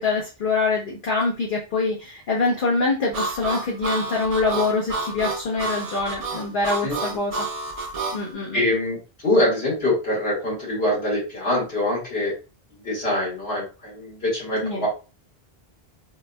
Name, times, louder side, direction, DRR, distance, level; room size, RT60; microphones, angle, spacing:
voice 1, 0.0-7.4 7.8-7.9 8.1-8.6 14.6-14.9, left 3 dB, 55° left, -3 dB, 1.0 m, -24 dB
Harmonica, 3.1-8.2, right 3 dB, 40° right, 0.6 m, -29 dB
voice 2, 6.8-7.2 8.5-12.3 12.8-14.9, left 1 dB, 75° left, -7 dB, 2.0 m, -24 dB
4.1 x 2.6 x 2.2 m, 0.31 s
omnidirectional pair, 1.1 m